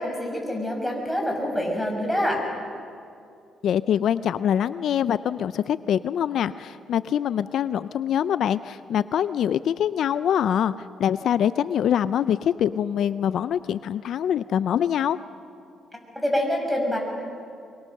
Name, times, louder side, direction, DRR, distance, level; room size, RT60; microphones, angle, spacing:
voice 1, 0.0-2.4 16.1-17.0, equal, ahead, 1 dB, 6.2 m, -26 dB
voice 2, 3.6-15.2, left 9 dB, 70° left, 14 dB, 0.5 m, -24 dB
24.0 x 23.5 x 6.6 m, 2.5 s
cardioid pair, 90°, 0 cm